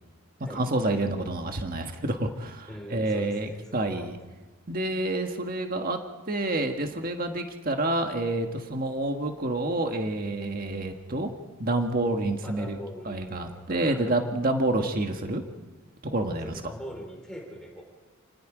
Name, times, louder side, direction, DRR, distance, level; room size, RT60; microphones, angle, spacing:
voice 1, 0.5-4.1 4.7-6.0 6.3-11.3 11.6-12.8 13.0-15.4 16.0-16.6, right 2 dB, 40° right, 4 dB, 1.6 m, -28 dB
voice 2, 2.7-4.1 12.4-14.2 16.4-17.8, equal, 5° left, 0 dB, 4.1 m, -42 dB
29.5 x 19.5 x 5.0 m, 1.1 s
head